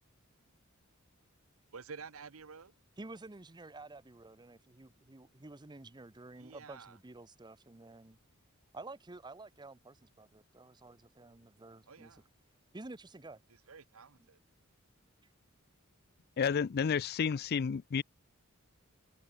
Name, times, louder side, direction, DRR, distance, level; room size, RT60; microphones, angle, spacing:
voice 1, 1.7-2.7 6.4-7.0 11.9-12.3 13.7-14.4, right 5 dB, 85° right, 1.0 m, -50 dB
voice 2, 3.0-8.2 8.7-12.2 12.7-13.4, right 2 dB, 20° right, 0.8 m, -50 dB
voice 3, 16.4-18.0, left 6 dB, 50° left, 0.4 m, -31 dB
head